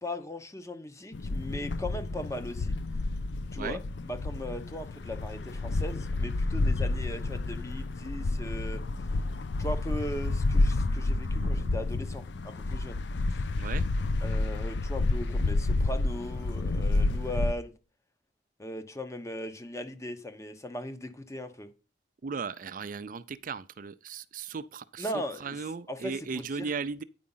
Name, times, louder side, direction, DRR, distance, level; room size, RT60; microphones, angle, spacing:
voice 1, 0.0-2.7 3.5-8.8 9.6-13.0 14.2-17.7 18.6-21.7 25.0-26.7, left 1 dB, 15° left, 1.0 m, -38 dB
sound 1, 1.1-17.5, left 2 dB, 85° left, 0.5 m, -30 dB
voice 2, 11.4-11.7 13.6-13.9 22.2-25.1 25.4-27.0, right 5 dB, 50° right, 0.5 m, -36 dB
9.4 x 5.0 x 5.6 m
head